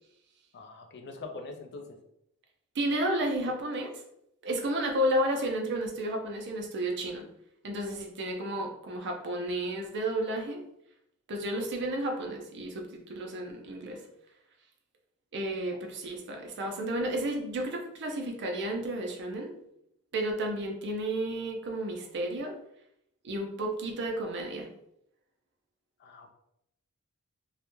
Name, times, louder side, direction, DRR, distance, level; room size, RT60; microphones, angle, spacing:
voice 1, 0.5-1.9 26.0-26.3, left 3 dB, 50° left, 4 dB, 0.4 m, -43 dB
voice 2, 2.7-3.9 4.4-7.2 7.6-10.6 11.3-14.0 15.3-19.5 20.1-22.5 23.2-24.7, right 1 dB, 55° right, 2 dB, 0.5 m, -32 dB
2.3 x 2.1 x 3.0 m, 0.77 s
head